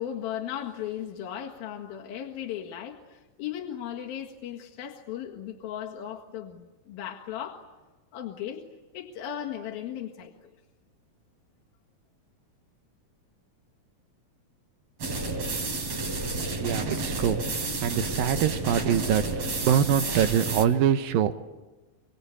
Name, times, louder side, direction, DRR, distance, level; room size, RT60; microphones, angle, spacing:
voice 1, 0.0-7.6 8.1-8.6 8.9-10.3, left 10 dB, 80° left, 0 dB, 3.6 m, -36 dB
sound 1, 15.0-20.6, right 2 dB, 45° right, 4.4 m, -31 dB
voice 2, 16.5-21.3, right 9 dB, 75° right, 10 dB, 2.7 m, -25 dB
25.5 x 25.0 x 8.4 m, 1.2 s
omnidirectional pair, 4.3 m